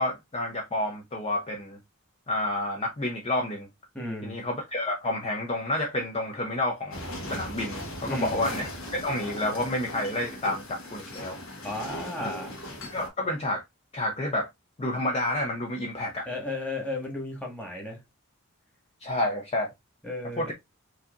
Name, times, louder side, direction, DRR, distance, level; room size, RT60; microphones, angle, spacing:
voice 1, 0.0-1.8 2.3-3.7 4.2-7.0 7.3-11.4 12.2-12.3 12.8-13.6 13.9-14.5 14.8-16.3 19.0-19.7 20.4-20.5, left 1 dB, 30° left, 0.6 m, -29 dB
voice 2, 3.9-4.4 8.1-8.4 11.6-12.5 16.3-18.0 20.0-20.5, left 1 dB, 5° left, 1.4 m, -34 dB
sound 1, 6.9-13.1, left 1 dB, 70° left, 1.3 m, -38 dB
4.7 x 2.8 x 2.4 m
head